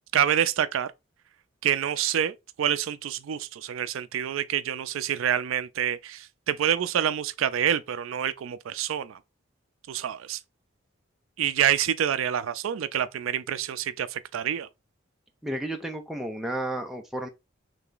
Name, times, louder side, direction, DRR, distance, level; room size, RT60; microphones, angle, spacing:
voice 1, 0.1-0.9 1.6-9.2 9.9-10.4 11.4-14.7, right 9 dB, 85° right, 0.4 m, -27 dB
voice 2, 15.4-17.3, right 1 dB, ahead, 0.5 m, -32 dB
3.3 x 2.9 x 3.8 m
head